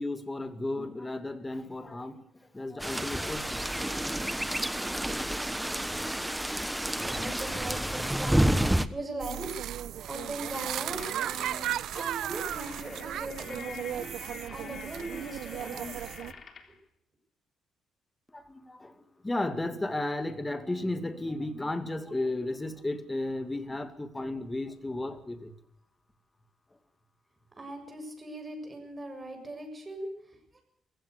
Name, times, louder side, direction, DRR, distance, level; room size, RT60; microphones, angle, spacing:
voice 1, 0.0-2.2 2.5-3.7 18.3-25.6, left 2 dB, 15° left, 9 dB, 2.4 m, -34 dB
sound 1, 2.8-8.9, right 1 dB, 5° right, 1.2 m, -29 dB
voice 2, 6.9-9.8 10.1-15.9 27.6-30.6, right 2 dB, 20° right, 4 dB, 7.5 m, -40 dB
sound 2, 7.9-8.5 9.8-16.8, left 5 dB, 50° left, 3.4 m, -48 dB
sound 3, 9.2-16.3, right 11 dB, 75° right, 0.8 m, -35 dB
23.5 x 16.0 x 8.3 m, 0.72 s
cardioid pair, 90°, 0 cm